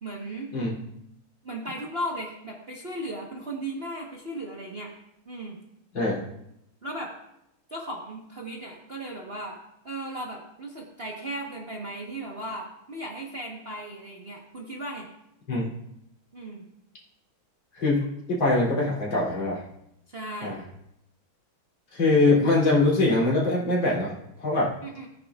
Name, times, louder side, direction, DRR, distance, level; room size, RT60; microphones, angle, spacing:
voice 1, 0.0-0.5 1.4-4.9 5.3-5.6 6.8-7.1 7.7-9.6 9.8-15.1 16.3-16.6 20.1-20.6 24.8-25.1, right 1 dB, 35° right, -2 dB, 1.2 m, -36 dB
voice 2, 18.3-19.6 20.4-20.6 21.9-24.1 24.4-24.7, left 2 dB, 65° left, -5 dB, 3.7 m, -22 dB
17.5 x 9.6 x 2.4 m, 0.80 s
omnidirectional pair, 2.3 m